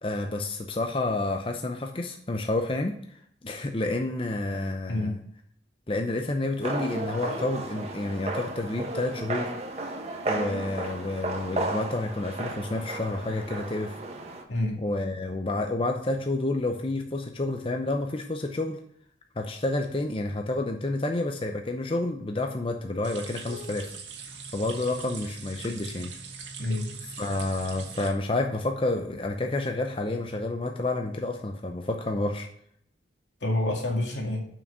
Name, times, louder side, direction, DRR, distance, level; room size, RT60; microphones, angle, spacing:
voice 1, 0.0-5.2 5.9-9.5 10.3-14.0 14.8-18.8 19.4-23.9 24.5-26.1 27.2-32.5, left 2 dB, 30° left, 3 dB, 0.7 m, -29 dB
sound 1, 6.6-14.4, right 2 dB, 35° right, 1.2 m, -34 dB
voice 2, 14.5-14.8 23.5-23.7 26.6-26.9 33.4-34.5, left 1 dB, 80° left, 1 dB, 2.2 m, -28 dB
sound 2, 23.0-28.1, right 5 dB, 80° right, 1.9 m, -42 dB
6.8 x 6.1 x 6.8 m, 0.66 s
head